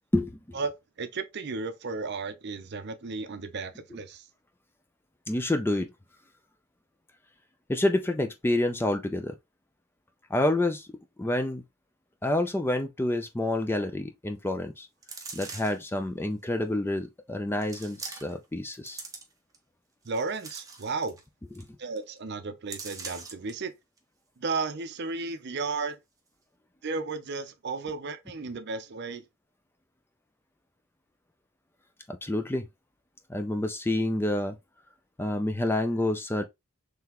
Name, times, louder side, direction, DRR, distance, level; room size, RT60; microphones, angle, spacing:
voice 1, 1.0-4.2 20.0-21.2 21.8-23.7 24.4-26.0 26.8-29.2, right 4 dB, 50° right, 0.6 m, -34 dB
voice 2, 5.3-5.9 7.7-9.3 10.3-10.9 11.2-11.6 12.2-14.9 15.3-19.0 21.6-21.7 32.1-32.7 33.3-34.6 35.2-36.4, left 1 dB, 10° left, 0.3 m, -28 dB
sound 1, 15.0-15.9 16.6-16.7 17.6-18.5 18.7-19.6 20.0-21.2 21.6-21.7 22.0-22.2 22.7-23.5 24.0-24.1, right 4 dB, 15° right, 0.8 m, -42 dB
3.9 x 3.3 x 2.9 m
head